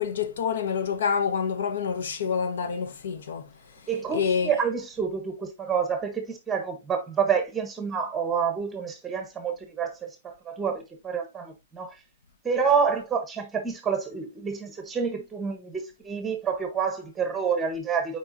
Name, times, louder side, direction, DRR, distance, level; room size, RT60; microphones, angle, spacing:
voice 1, 0.0-3.5 4.1-4.6, left 6 dB, 80° left, 1.0 m, -27 dB
voice 2, 3.9-11.9 12.4-18.2, right 6 dB, 10° right, 0.8 m, -28 dB
8.7 x 4.5 x 2.5 m
hypercardioid pair, 165°, 0 cm